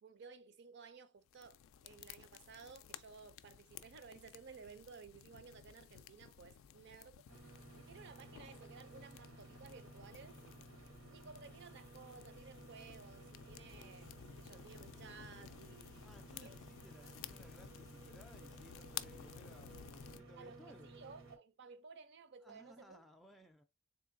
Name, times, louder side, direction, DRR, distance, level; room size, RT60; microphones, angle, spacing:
voice 1, 0.0-7.3 7.9-10.4 11.1-16.1 16.3-16.6 17.0-17.2 20.4-23.0, right 5 dB, 60° right, 0.5 m, -56 dB
sound 1, 1.3-20.2, left 10 dB, 85° left, 0.3 m, -54 dB
sound 2, 7.3-21.4, right 2 dB, 80° right, 0.8 m, -57 dB
voice 2, 16.0-20.9 22.4-23.6, equal, ahead, 0.3 m, -61 dB
3.7 x 3.0 x 2.5 m
head